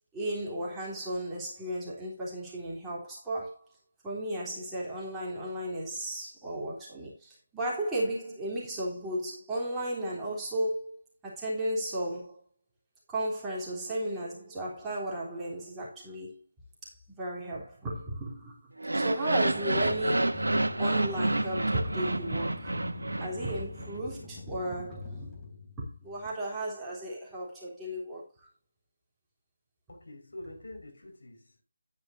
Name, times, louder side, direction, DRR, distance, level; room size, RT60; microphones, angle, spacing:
voice 1, 0.1-3.6 4.0-11.0 11.2-12.4 13.1-16.4 17.1-18.6 18.9-22.7 23.2-25.4 25.8-28.5, right 1 dB, 10° right, 3.5 m, -34 dB
sound 1, 18.8-23.9, right 2 dB, 75° right, 1.2 m, -29 dB
sound 2, 19.4-26.3, left 3 dB, 15° left, 3.5 m, -45 dB
voice 2, 29.9-31.6, left 1 dB, 65° left, 5.3 m, -46 dB
11.0 x 10.5 x 2.7 m
figure-of-eight pair, 155°, 0 cm